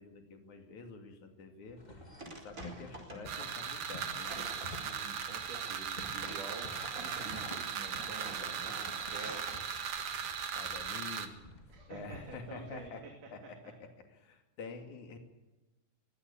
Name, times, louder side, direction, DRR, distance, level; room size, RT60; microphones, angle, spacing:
voice 1, 0.0-1.8 2.5-4.3 6.6-6.8 8.4-9.1 10.5-11.4 11.9-13.0 13.3-15.2, left 4 dB, 70° left, 4 dB, 3.9 m, -48 dB
sound 1, 1.7-10.3, right 1 dB, 25° right, 4.8 m, -48 dB
sound 2, 1.8-12.9, left 2 dB, 15° left, 1.5 m, -53 dB
sound 3, 3.3-11.3, right 7 dB, 60° right, 2.7 m, -38 dB
voice 2, 4.6-9.4 11.7-13.1, right 4 dB, 75° right, 2 dB, 4.2 m, -48 dB
22.0 x 16.0 x 8.6 m, 1.1 s
omnidirectional pair, 3.6 m